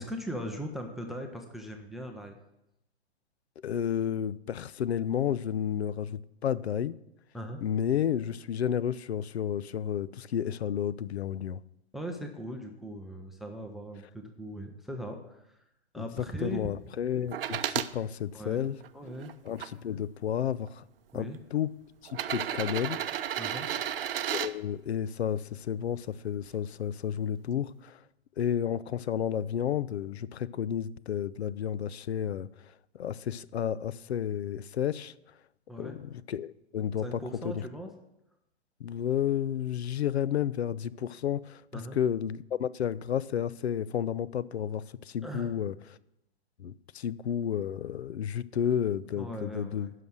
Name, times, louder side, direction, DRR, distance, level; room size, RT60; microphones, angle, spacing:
voice 1, 0.0-2.4 7.3-7.6 11.9-15.4 15.9-16.7 18.3-18.6 18.9-19.3 21.1-21.4 23.4-23.7 35.7-36.0 37.0-37.9 41.7-42.0 45.2-45.6 49.1-49.9, equal, ahead, 0.5 m, -39 dB
voice 2, 3.6-7.0 7.6-11.6 16.0-18.8 19.5-20.8 21.1-21.7 22.1-23.0 24.3-28.0 28.4-32.5 32.9-35.1 35.8-37.2 37.4-37.6 38.8-45.8 46.6-49.9, left 9 dB, 75° left, 0.5 m, -31 dB
sound 1, 17.3-17.9 18.6-19.7 20.7-20.8 22.1-24.5 26.4-26.5, right 10 dB, 60° right, 0.6 m, -33 dB
10.5 x 5.9 x 6.2 m
figure-of-eight pair, 120°, 32 cm